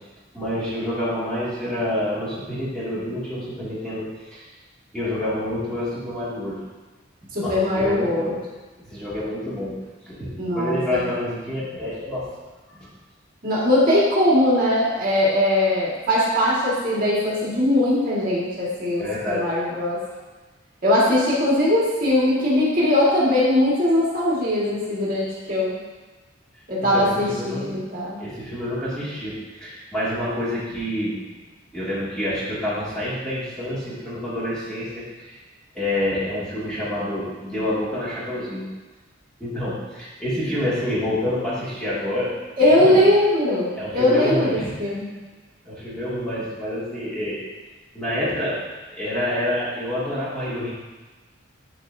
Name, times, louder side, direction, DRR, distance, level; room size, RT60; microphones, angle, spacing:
voice 1, 0.3-4.4 4.9-6.6 7.4-8.4 8.8-9.8 10.1-12.3 12.7-12.9 19.0-20.2 26.8-27.8 28.2-31.2 31.7-35.4 35.7-38.7 39.4-43.0 43.7-44.8 45.6-47.5 47.9-50.7, left 1 dB, 5° left, -11 dB, 2.2 m, -28 dB
voice 2, 7.3-8.4 10.4-11.0 13.4-20.0 20.8-25.7 26.7-28.2 42.6-45.1, left 1 dB, 45° right, -7 dB, 1.9 m, -20 dB
12.0 x 4.4 x 2.7 m, 1.2 s
head